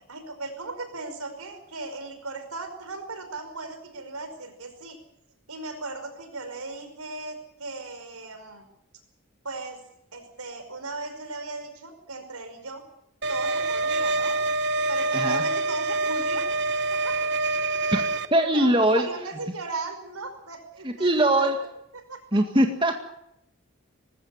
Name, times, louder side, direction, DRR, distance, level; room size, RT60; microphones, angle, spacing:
voice 1, 0.1-5.0 5.5-8.7 9.4-9.8 10.1-12.8 13.3-14.4 14.9-16.5 16.9-17.3 18.3-21.6 21.9-22.4, right 3 dB, 90° right, 7 dB, 5.3 m, -37 dB
sound 1, 13.2-18.3, right 2 dB, 50° right, 1.0 m, -26 dB
voice 2, 18.3-19.1 20.8-21.6 22.3-23.1, right 1 dB, 25° right, 5 dB, 1.8 m, -21 dB
19.5 x 16.0 x 9.7 m, 0.78 s
head